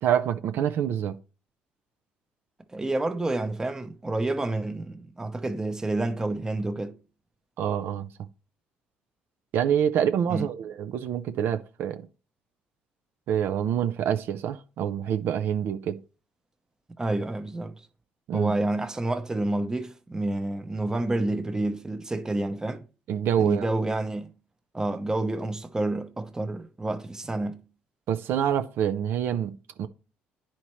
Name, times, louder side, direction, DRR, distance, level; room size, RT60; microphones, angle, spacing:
voice 1, 0.0-1.2 7.6-8.1 9.5-12.1 13.3-16.0 18.3-18.5 23.1-23.7 28.1-29.9, right 9 dB, 70° right, 0.5 m, -26 dB
voice 2, 2.7-6.9 10.3-10.5 17.0-17.9 18.3-22.8 23.4-24.3 24.7-27.6, right 2 dB, 15° right, 0.8 m, -29 dB
9.6 x 4.3 x 3.1 m
cardioid pair, 90°, 4 cm